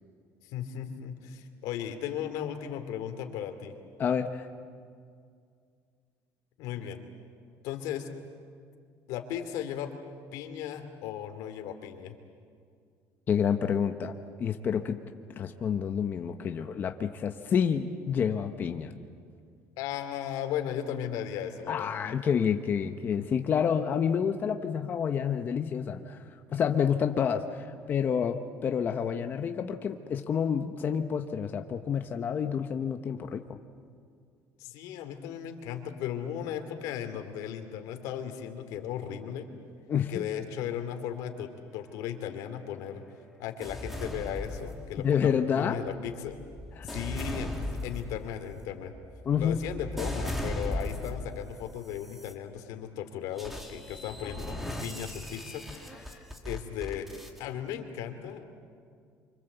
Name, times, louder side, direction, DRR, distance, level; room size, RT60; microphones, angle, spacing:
voice 1, 0.4-3.7 6.6-7.0 7.6-8.1 9.1-9.9 10.3-12.1 19.8-21.9 34.6-39.5 40.1-43.0 43.4-46.4 46.8-48.9 49.4-55.6 56.0-56.2 56.4-57.1 57.4-58.4, left 9 dB, 90° left, 6 dB, 2.7 m, -36 dB
voice 2, 4.0-4.5 13.3-15.0 15.4-18.9 21.7-26.2 26.5-33.6 39.9-40.2 45.0-45.8 46.8-46.9 49.3-49.6, left 7 dB, 35° left, 6 dB, 0.9 m, -29 dB
sound 1, 43.6-45.2 45.9-51.4 51.9-52.3 53.4-57.4, left 1 dB, 5° right, 2.2 m, -37 dB
27.5 x 25.0 x 8.1 m, 2.2 s
cardioid pair, 165°, 6 cm